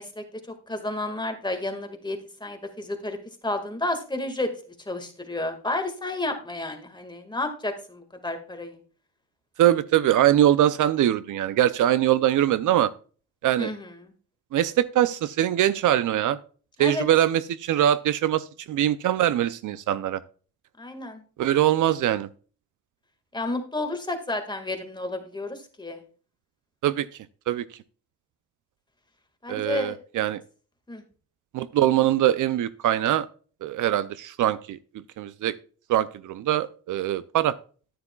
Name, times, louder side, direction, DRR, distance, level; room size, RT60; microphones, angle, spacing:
voice 1, 0.0-3.2 3.4-4.5 4.9-8.8 13.6-14.1 16.8-17.1 20.8-21.2 23.3-26.0 29.4-30.0 30.9-31.0, left 2 dB, 15° left, 6 dB, 1.8 m, -31 dB
voice 2, 9.6-12.9 13.4-13.7 14.5-16.4 16.8-20.2 21.4-22.3 26.8-27.1 27.5-27.6 29.5-30.4 31.5-33.3 33.6-34.8 35.2-35.6 35.9-37.6, right 12 dB, 65° right, 16 dB, 0.5 m, -22 dB
9.6 x 9.5 x 2.3 m, 0.40 s
cardioid pair, 80°, 33 cm